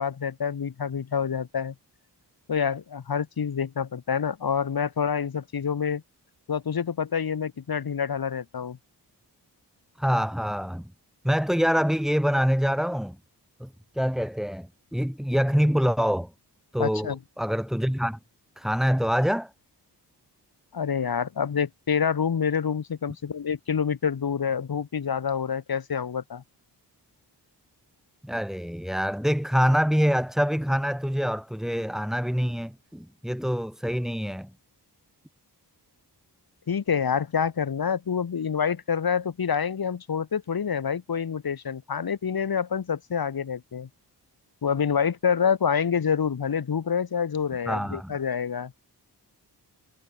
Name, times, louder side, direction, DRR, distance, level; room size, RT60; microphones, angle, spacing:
voice 1, 0.0-1.7 2.5-6.0 6.5-8.8 16.8-17.2 20.7-26.4 36.7-43.9 44.6-48.7, left 7 dB, 60° left, 2.3 m, -27 dB
voice 2, 10.0-10.9 11.2-13.2 13.6-13.7 13.9-16.3 16.7-18.2 18.6-19.5 28.2-34.5 47.7-48.1, equal, ahead, 1.7 m, -25 dB
wide cardioid pair, 140°, 41 cm